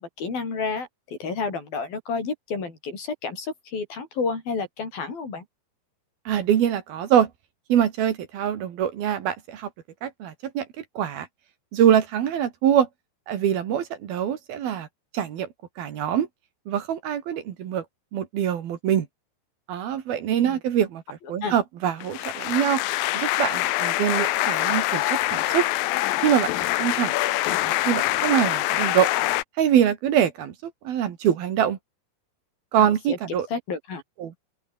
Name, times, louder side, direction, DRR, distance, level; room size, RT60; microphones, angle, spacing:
voice 1, 0.0-5.4 20.4-20.6 21.4-21.6 32.8-34.0, left 4 dB, 60° left, 7.8 m, -31 dB
voice 2, 6.3-7.3 7.7-9.7 10.0-11.3 11.7-12.9 13.3-14.9 15.1-15.5 15.8-16.3 16.7-17.8 18.1-19.1 19.7-22.8 23.1-25.7 26.2-26.5 26.8-27.1 27.6-29.1 29.6-31.8 32.7-33.5 34.2-34.4, right 9 dB, 65° right, 3.7 m, -24 dB
sound 1, 22.0-29.4, left 17 dB, 75° left, 2.2 m, -25 dB
open air
omnidirectional pair, 4.8 m